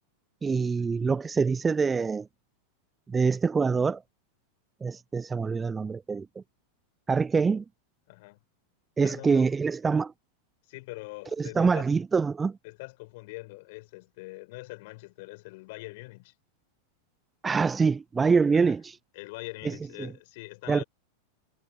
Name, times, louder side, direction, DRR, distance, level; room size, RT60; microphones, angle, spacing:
voice 1, 0.4-2.3 3.1-4.0 4.8-6.4 7.1-7.6 9.0-10.1 11.4-12.6 17.4-19.0 19.6-20.1 20.7-20.8, right 5 dB, 15° right, 0.3 m, -25 dB
voice 2, 8.1-8.4 9.0-9.5 10.7-11.9 12.6-16.3 18.5-18.8 19.1-20.8, left 24 dB, 50° left, 4.4 m, -43 dB
figure-of-eight pair, 90°, 0 cm